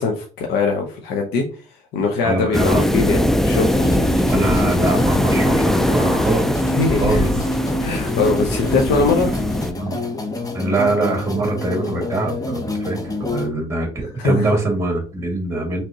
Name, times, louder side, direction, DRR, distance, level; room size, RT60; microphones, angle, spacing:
voice 1, 0.0-1.4 1.9-4.3 6.7-7.2 7.8-9.3 14.2-14.6, left 4 dB, 80° left, 1 dB, 0.9 m, -21 dB
voice 2, 2.2-2.9 4.3-6.6 7.0-7.3 9.8-10.0 10.5-15.8, right 2 dB, 15° right, 2 dB, 2.1 m, -23 dB
sound 1, 2.5-9.7, left 1 dB, ahead, 0.3 m, -20 dB
sound 2, 3.7-13.5, left 1 dB, 20° left, 0.9 m, -26 dB
5.4 x 3.4 x 2.9 m, 0.38 s
cardioid pair, 110°, 17 cm